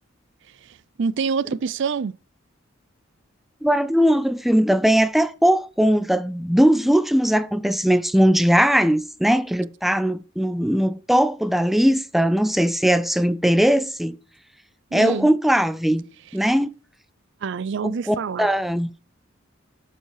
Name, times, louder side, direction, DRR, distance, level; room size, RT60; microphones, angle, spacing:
voice 1, 0.6-2.1 14.9-15.3 17.4-18.5, right 5 dB, 65° right, 0.4 m, -26 dB
voice 2, 3.6-14.2 14.9-16.1 16.3-16.7 17.8-18.9, equal, ahead, 0.4 m, -19 dB
12.0 x 5.5 x 4.8 m
head